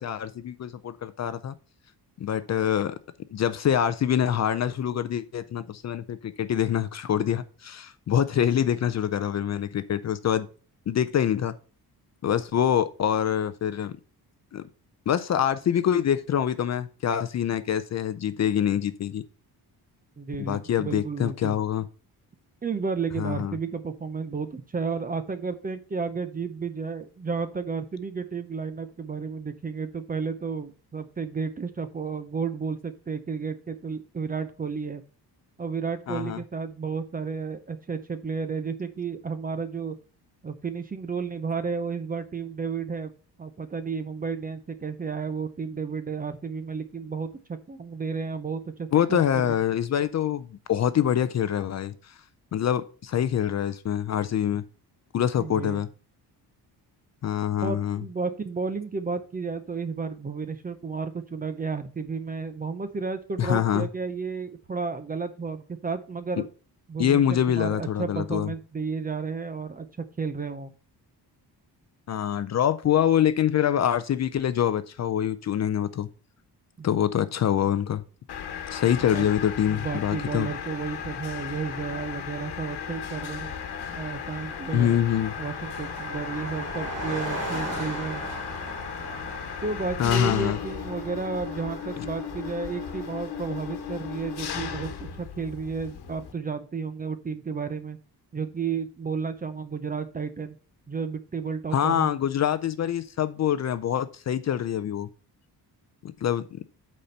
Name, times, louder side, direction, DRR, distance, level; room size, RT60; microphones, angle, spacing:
voice 1, 0.0-1.5 2.2-3.0 3.3-10.5 10.9-11.5 12.2-13.9 14.5-14.6 15.1-19.2 20.4-21.8 23.2-23.6 36.1-36.4 48.9-51.9 52.5-54.6 55.1-55.9 57.2-58.0 63.4-63.9 67.0-68.5 72.1-76.1 76.8-78.0 78.7-80.5 84.7-85.3 90.0-90.6 92.0-92.1 101.7-105.1 106.2-106.6, left 9 dB, 45° left, 0.5 m, -25 dB
voice 2, 20.2-21.5 22.6-35.0 35.6-40.0 40.4-43.1 43.4-49.6 55.4-55.8 57.6-66.5 66.9-69.9 70.2-70.7 76.8-76.9 79.0-79.3 79.7-83.5 83.9-85.0 85.4-88.2 89.6-98.0 98.3-100.5 100.9-102.1, right 5 dB, 20° right, 0.5 m, -32 dB
Mechanisms, 78.3-96.3, left 7 dB, 70° left, 1.2 m, -36 dB
Car passing by, 82.5-93.5, right 1 dB, 35° right, 3.1 m, -39 dB
8.4 x 4.3 x 5.5 m
wide cardioid pair, 175°, 40 cm